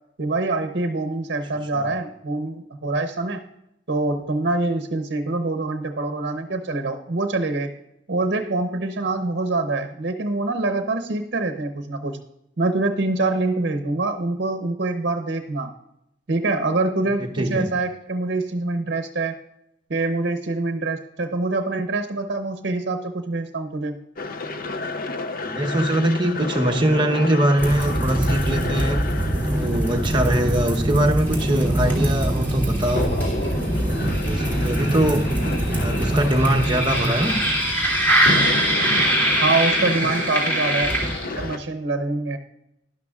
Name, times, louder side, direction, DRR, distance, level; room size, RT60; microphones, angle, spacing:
voice 1, 0.2-3.5 3.9-7.7 8.1-12.2 12.6-15.7 16.3-19.4 19.9-24.0 39.4-40.9 41.3-42.4, right 2 dB, 60° right, 6 dB, 0.8 m, -25 dB
voice 2, 17.2-17.7 25.4-29.0 29.4-33.1 33.8-35.2 35.7-37.4, right 1 dB, 25° right, 2 dB, 0.9 m, -22 dB
sound 1, 24.2-41.6, left 3 dB, 50° left, 0.6 m, -32 dB
sound 2, 27.6-41.5, right 1 dB, 10° left, 2.5 m, -23 dB
11.5 x 11.0 x 2.4 m, 0.81 s
head